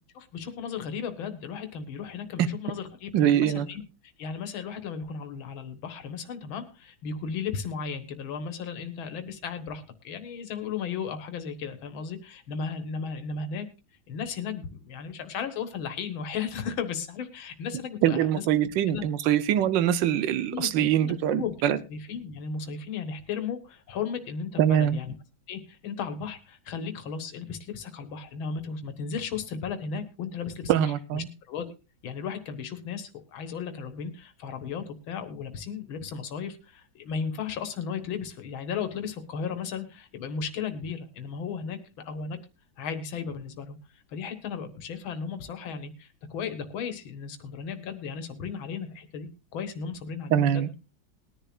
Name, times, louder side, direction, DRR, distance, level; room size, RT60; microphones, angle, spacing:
voice 1, 0.2-3.8 4.2-13.6 14.1-18.4 18.9-19.0 20.5-25.1 25.5-31.7 32.0-42.4 42.8-43.8 44.1-50.7, left 6 dB, 85° left, 2.1 m, -35 dB
voice 2, 3.1-3.7 18.0-21.8 24.6-25.0 30.7-31.3 50.3-50.8, right 10 dB, 70° right, 1.4 m, -23 dB
20.5 x 10.5 x 2.4 m
omnidirectional pair, 2.2 m